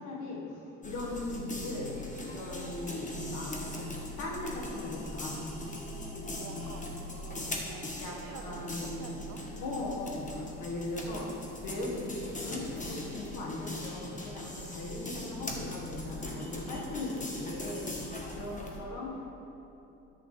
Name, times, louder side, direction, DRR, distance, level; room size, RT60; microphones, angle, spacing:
voice 1, 0.0-1.9 2.3-3.9 4.2-5.8 8.0-9.1 9.6-19.3, left 2 dB, 85° left, -2 dB, 1.7 m, -39 dB
sound 1, 0.8-18.8, left 1 dB, 25° left, 1.3 m, -40 dB
voice 2, 5.9-9.4 16.6-17.2 17.8-18.3, right 6 dB, 90° right, 6 dB, 0.8 m, -50 dB
10.5 x 8.3 x 3.4 m, 2.9 s
cardioid pair, 90°, 30 cm